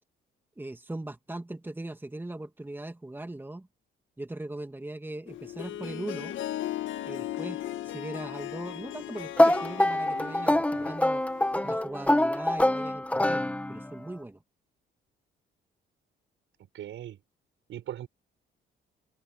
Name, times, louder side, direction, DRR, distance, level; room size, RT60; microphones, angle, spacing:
voice 1, 0.6-3.7 4.2-6.4 7.1-11.2 11.6-14.4, right 2 dB, 10° right, 2.4 m, -39 dB
Harp, 5.3-11.8, left 13 dB, 75° left, 1.6 m, -37 dB
sound 1, 9.4-14.0, left 1 dB, 5° left, 1.3 m, -25 dB
voice 2, 16.7-17.2 17.7-18.1, right 11 dB, 75° right, 6.1 m, -38 dB
cardioid pair, 90°, 20 cm